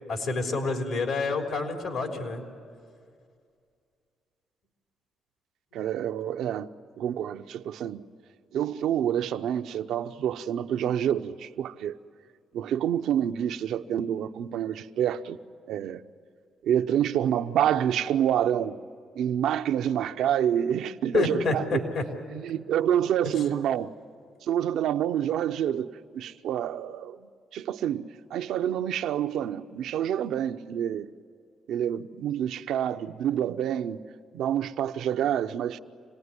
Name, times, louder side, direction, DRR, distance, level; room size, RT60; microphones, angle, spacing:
voice 1, 0.1-2.4 21.1-22.0, left 3 dB, 75° left, 3.5 m, -28 dB
voice 2, 5.7-6.7 7.0-8.0 8.5-12.0 12.5-15.4 15.7-16.0 16.6-18.8 19.2-21.8 22.3-23.9 24.5-27.2 27.5-28.0 28.3-31.1 31.7-34.0 34.3-35.8, right 10 dB, 80° right, 0.7 m, -27 dB
27.0 x 18.5 x 9.7 m
cardioid pair, 90°, 0 cm